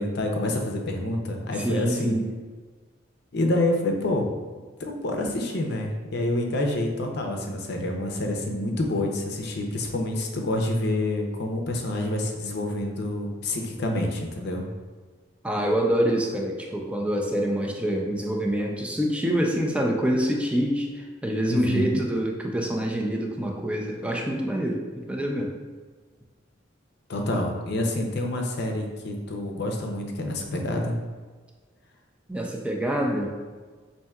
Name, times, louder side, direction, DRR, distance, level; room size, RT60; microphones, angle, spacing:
voice 1, 0.0-2.1 3.3-4.3 4.8-14.7 21.5-22.0 27.1-31.0, left 1 dB, 55° left, 2 dB, 0.5 m, -27 dB
voice 2, 1.5-2.3 15.4-25.5 32.3-33.3, equal, 5° right, 0 dB, 0.4 m, -26 dB
5.5 x 2.7 x 2.3 m, 1.4 s
head